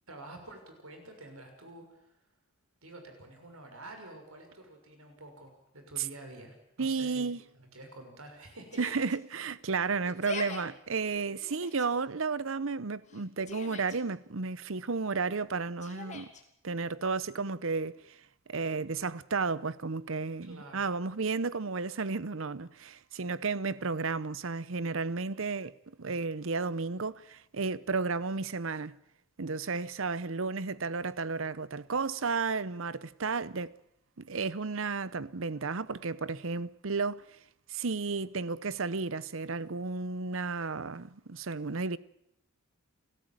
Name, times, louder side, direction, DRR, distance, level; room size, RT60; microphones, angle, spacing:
voice 1, 0.1-2.1 2.8-7.3 7.5-8.8 20.4-20.9, right 2 dB, 80° right, 6.2 m, -49 dB
voice 2, 6.8-7.4 8.8-16.3 16.6-18.2 18.5-29.0 29.4-33.7 34.2-37.2 37.7-42.0, right 4 dB, 65° right, 0.8 m, -33 dB
Yell, 8.7-9.2 10.0-10.6 11.4-11.9 13.1-14.0 15.8-16.4, left 3 dB, 35° left, 2.7 m, -42 dB
30.0 x 13.5 x 8.9 m
head